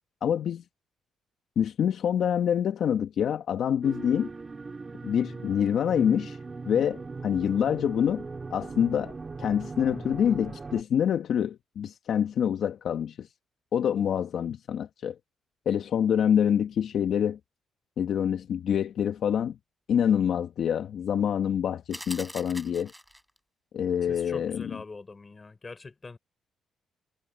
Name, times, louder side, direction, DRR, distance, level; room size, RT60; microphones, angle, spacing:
voice 1, 0.2-0.6 1.6-4.3 5.0-6.4 6.6-8.2 8.5-13.3 13.7-15.1 15.6-17.4 18.0-19.6 19.9-22.9 23.7-24.6, left 8 dB, 65° left, 1.5 m, -26 dB
sound 1, 3.8-10.8, right 4 dB, 30° right, 2.4 m, -39 dB
sound 2, 21.9-23.4, equal, ahead, 5.7 m, -42 dB
voice 2, 24.0-26.2, left 3 dB, 25° left, 5.3 m, -42 dB
cardioid pair, 90°, 0 cm